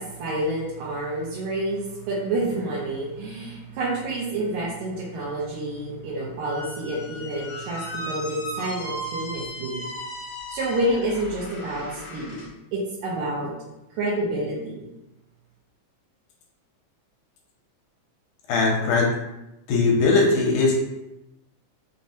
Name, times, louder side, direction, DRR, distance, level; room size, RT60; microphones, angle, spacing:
voice 1, 0.0-9.9 10.5-12.4 12.7-13.5 13.9-14.9, right 1 dB, 75° right, -7 dB, 1.9 m, -28 dB
Squeak, 6.4-12.5, equal, 60° left, 1.5 m, -36 dB
voice 2, 18.5-19.1 19.7-20.7, left 3 dB, 80° left, -1 dB, 2.0 m, -19 dB
5.4 x 2.0 x 2.6 m, 0.92 s
omnidirectional pair, 3.6 m